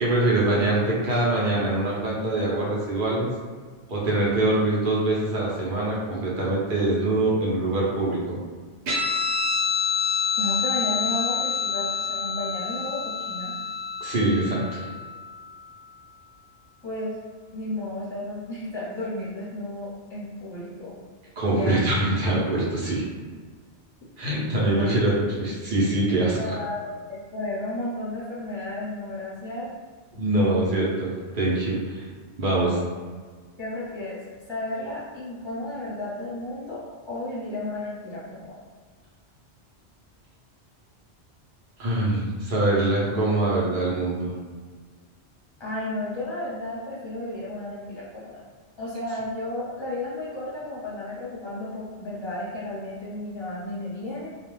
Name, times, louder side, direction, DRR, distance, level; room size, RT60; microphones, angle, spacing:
voice 1, 0.0-3.3 3.9-8.4 14.0-14.8 21.4-23.0 24.2-26.4 30.2-32.0 32.4-32.8 41.8-44.4, right 2 dB, 55° right, -5 dB, 0.8 m, -24 dB
Guitar, 8.9-15.8, left 5 dB, 80° right, 1.0 m, -28 dB
voice 2, 10.4-13.5 16.8-17.2 17.5-20.9 21.5-21.8 24.7-24.9 26.4-29.7 32.6-32.9 33.6-34.2 34.5-38.4 45.6-48.4 48.8-54.3, left 1 dB, 25° left, -8 dB, 0.8 m, -33 dB
2.3 x 2.2 x 3.2 m, 1.5 s
omnidirectional pair, 1.2 m